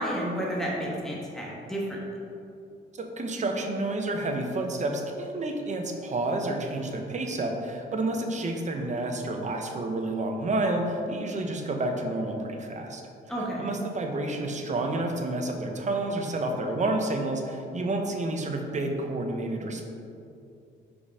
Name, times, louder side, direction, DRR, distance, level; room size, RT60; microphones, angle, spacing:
voice 1, 0.0-2.0 13.3-13.7, equal, ahead, -4 dB, 1.3 m, -31 dB
voice 2, 3.0-13.0 13.4-19.8, right 2 dB, 35° right, 3 dB, 0.9 m, -30 dB
5.3 x 5.0 x 4.8 m, 2.6 s
cardioid pair, 90°, 20 cm